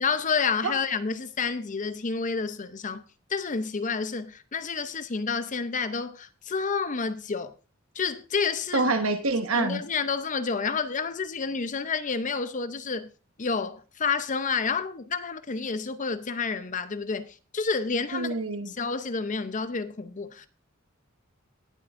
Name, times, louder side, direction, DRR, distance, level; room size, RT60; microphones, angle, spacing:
voice 1, 0.0-3.0 3.3-7.5 7.9-8.9 9.5-13.1 13.4-18.3 18.7-20.5, left 5 dB, 40° left, 0.7 m, -29 dB
voice 2, 8.7-9.8 18.1-18.7, right 3 dB, 80° right, 1.4 m, -26 dB
19.0 x 7.7 x 2.6 m
head